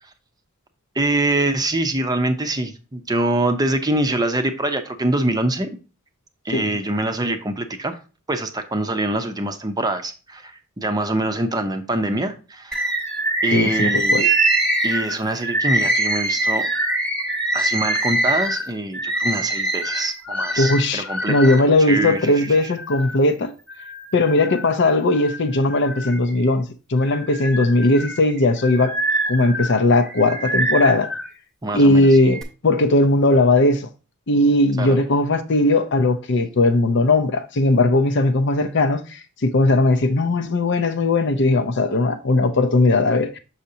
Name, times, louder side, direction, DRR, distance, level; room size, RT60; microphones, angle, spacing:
voice 1, 1.0-5.7 6.4-8.0 8.3-13.0 13.4-14.3 14.8-16.6 17.5-22.7 31.6-32.1 34.8-35.0, right 2 dB, 20° right, 0.6 m, -24 dB
Bird, 12.7-21.6 22.2-23.2 23.7-24.7 25.1-26.5 27.0-31.3 32.0-32.4, right 1 dB, 5° left, 1.1 m, -24 dB
voice 2, 13.5-14.2 20.6-23.5 24.1-29.0 29.3-31.1 31.7-33.9 34.3-39.0 39.4-43.4, left 2 dB, 55° left, 0.6 m, -18 dB
6.4 x 5.7 x 2.8 m
head